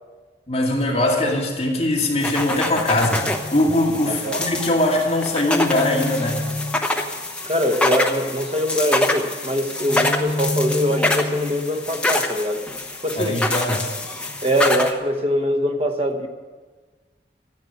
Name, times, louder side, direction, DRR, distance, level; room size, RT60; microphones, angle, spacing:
voice 1, 0.5-6.4 13.2-13.9, left 1 dB, 35° left, -2 dB, 2.3 m, -21 dB
sound 1, 2.2-14.9, left 2 dB, 5° left, 0.9 m, -25 dB
voice 2, 4.1-4.4 7.4-12.7 13.0-13.4 14.4-16.3, equal, 35° right, 5 dB, 1.1 m, -23 dB
14.5 x 8.5 x 9.1 m, 1.4 s
head